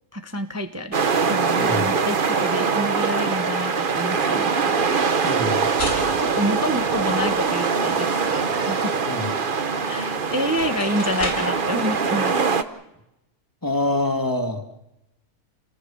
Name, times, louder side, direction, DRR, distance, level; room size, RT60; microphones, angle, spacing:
voice 1, 0.1-4.9 6.2-9.0 9.9-12.6, equal, 10° right, 8 dB, 1.0 m, -28 dB
sound 1, 0.9-12.6, right 5 dB, 40° right, 1.1 m, -23 dB
voice 2, 1.5-1.9 5.2-5.7 9.1-9.3 13.6-14.6, left 2 dB, 15° left, 6 dB, 1.9 m, -25 dB
sound 2, 5.1-7.5 9.9-10.0 10.4-11.6, left 1 dB, 75° left, 6.3 m, -34 dB
28.5 x 19.0 x 7.0 m, 0.90 s
omnidirectional pair, 1.6 m